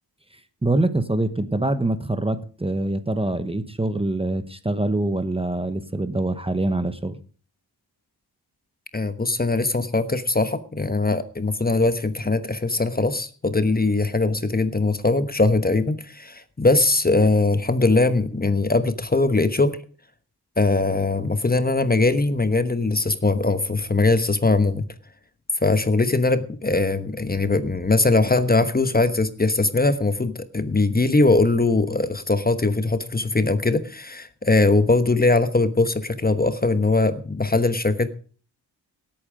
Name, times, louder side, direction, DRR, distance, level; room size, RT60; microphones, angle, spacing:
voice 1, 0.6-7.2, right 2 dB, 15° right, 11 dB, 1.0 m, -24 dB
voice 2, 8.9-19.8 20.6-24.9 25.6-38.1, left 3 dB, 25° left, 11 dB, 1.1 m, -21 dB
18.0 x 8.8 x 5.1 m, 0.42 s
cardioid pair, 80°, 40 cm